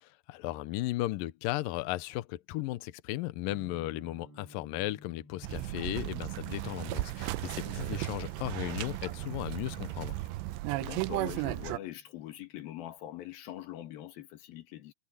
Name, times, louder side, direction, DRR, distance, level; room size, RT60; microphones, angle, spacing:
voice 1, 0.0-10.2, left 17 dB, 85° left, 2.0 m, -36 dB
sound 1, 3.5-13.3, equal, 40° right, 2.0 m, -58 dB
sound 2, 5.4-11.8, right 18 dB, 90° right, 2.9 m, -35 dB
Crumpling crinkling, 5.9-10.8, right 4 dB, 70° right, 9.4 m, -54 dB
voice 2, 7.6-8.0 10.8-14.9, left 13 dB, 65° left, 3.2 m, -43 dB
omnidirectional pair, 4.9 m